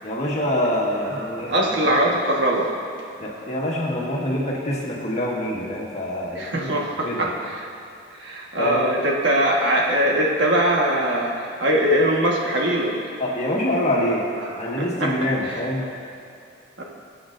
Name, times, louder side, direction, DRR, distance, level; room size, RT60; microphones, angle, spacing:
voice 1, 0.0-1.9 3.2-6.7 7.0-7.3 8.6-8.8 13.2-14.3 14.6-15.8, equal, 35° left, -3 dB, 1.6 m, -25 dB
voice 2, 1.1-2.7 6.3-7.7 8.1-13.0 14.4-15.1 15.4-15.9 16.8-16.9, right 1 dB, 65° right, -2 dB, 1.5 m, -22 dB
20.5 x 8.0 x 2.6 m, 2.6 s
head